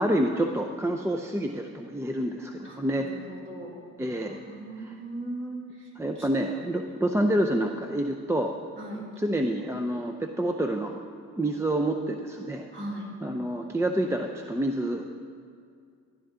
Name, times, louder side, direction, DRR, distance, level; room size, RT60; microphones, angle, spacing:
voice 1, 0.0-3.1 4.0-4.4 4.8-4.9 6.0-8.5 9.2-11.0 11.3-12.7 13.2-15.0, right 1 dB, 10° right, 3 dB, 0.6 m, -28 dB
voice 2, 2.6-3.7 4.3-5.9 6.1-6.3 8.8-9.1 12.7-13.2, right 1 dB, 40° right, -4 dB, 3.2 m, -38 dB
13.0 x 11.5 x 3.7 m, 2.2 s
cardioid pair, 90°, 30 cm